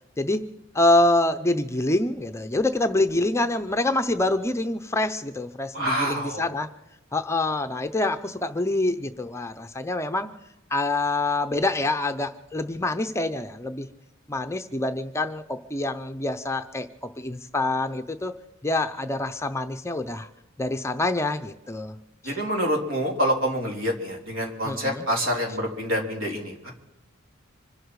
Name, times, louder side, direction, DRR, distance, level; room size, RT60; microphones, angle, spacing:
voice 1, 0.7-6.7 7.1-10.3 10.7-13.9 14.3-18.3 18.6-20.3 20.6-21.9 22.2-22.4 24.6-25.1, left 2 dB, 15° left, 8 dB, 0.6 m, -26 dB
voice 2, 5.7-6.5 22.3-26.7, equal, 65° right, 1 dB, 3.6 m, -27 dB
25.5 x 11.5 x 4.8 m, 0.92 s
head